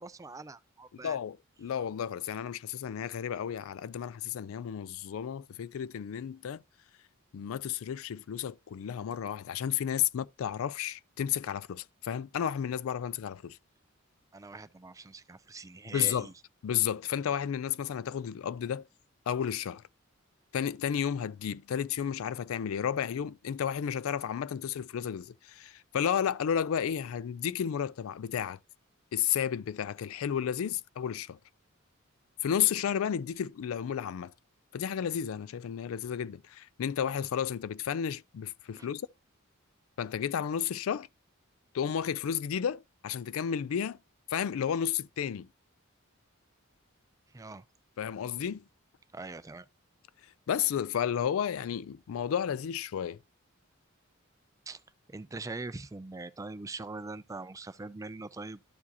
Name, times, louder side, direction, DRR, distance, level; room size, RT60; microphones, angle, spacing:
voice 1, 0.0-1.2 14.3-16.3 38.8-38.9 47.3-47.6 49.1-49.7 54.7-54.8 55.1-58.6, right 3 dB, 15° right, 0.4 m, -42 dB
voice 2, 1.0-6.6 7.3-13.6 15.9-16.3 16.6-18.9 19.3-19.8 20.5-28.6 29.1-31.4 32.4-34.3 34.7-39.1 40.0-41.1 41.7-44.0 44.3-45.5 48.0-48.6 50.5-53.2, left 8 dB, 75° left, 0.4 m, -32 dB
12.5 x 4.8 x 2.7 m
head